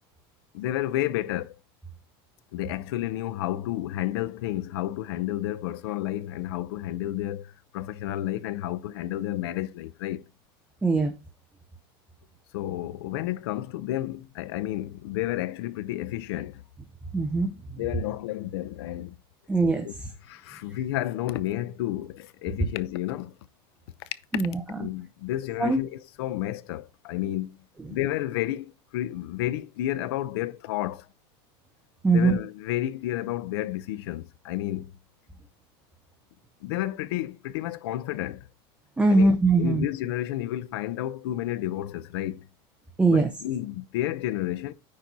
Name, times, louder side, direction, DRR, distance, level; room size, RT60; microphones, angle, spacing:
voice 1, 0.5-1.5 2.5-10.2 12.5-16.6 17.8-19.2 19.8-19.9 20.2-23.3 24.3-24.4 24.8-27.5 27.9-31.1 32.1-34.9 36.6-38.5 39.1-42.4 43.1-44.7, left 14 dB, 85° left, 0.7 m, -31 dB
voice 2, 10.8-11.1 17.1-17.5 19.5-20.1 24.3-24.8 25.6-25.8 32.0-32.4 39.0-39.9 43.0-43.3, right 3 dB, 10° right, 0.8 m, -21 dB
9.6 x 4.5 x 4.0 m
supercardioid pair, 145°, 13 cm